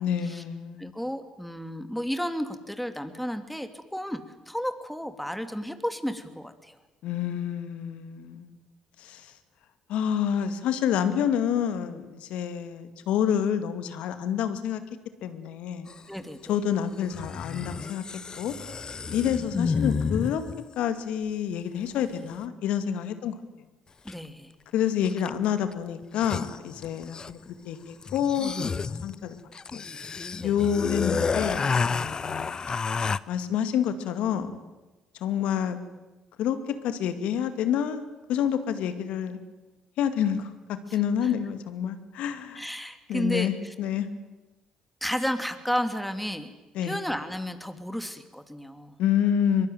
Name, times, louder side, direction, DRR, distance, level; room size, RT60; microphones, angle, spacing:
voice 1, 0.0-0.9 7.0-8.6 9.0-9.3 9.9-14.8 15.2-15.9 16.5-18.0 18.4-18.5 19.1-20.4 20.8-23.4 24.7-27.4 27.6-29.4 29.7-29.8 30.4-32.5 33.0-34.6 35.2-35.8 36.4-38.0 38.3-39.4 40.0-42.6 43.1-44.1 46.7-47.0 49.0-49.7, left 9 dB, 70° left, 10 dB, 2.2 m, -28 dB
voice 2, 0.8-4.2 4.5-6.8 16.1-16.6 19.1-19.2 24.0-24.5 30.4-30.5 40.9-41.3 42.5-43.7 45.0-46.5 46.8-48.9, equal, ahead, 7 dB, 2.8 m, -32 dB
sound 1, 15.9-16.0 17.1-20.6 24.1-24.2 25.0-25.4 25.7-25.8 26.0-27.5 28.0-33.2, left 5 dB, 35° left, 0.8 m, -30 dB
23.0 x 23.0 x 9.3 m, 1.1 s
hypercardioid pair, 55°, 2 cm